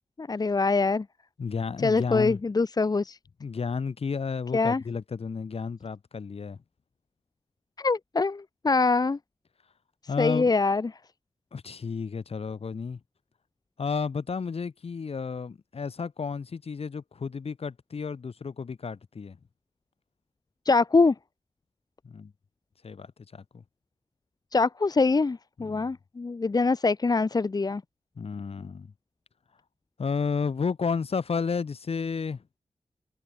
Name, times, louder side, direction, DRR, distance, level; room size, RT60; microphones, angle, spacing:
voice 1, 0.2-1.0 1.8-3.2 4.5-4.8 7.8-9.2 10.2-10.9 20.6-21.1 24.5-27.8, left 3 dB, 40° left, 1.4 m, -24 dB
voice 2, 1.4-2.4 3.4-6.6 10.1-10.5 11.5-13.0 13.8-19.4 22.1-22.3 22.8-23.1 23.3-23.4 25.6-25.9 28.2-28.9 30.0-32.4, left 5 dB, 70° left, 7.2 m, -32 dB
wide cardioid pair, 130°, 11 cm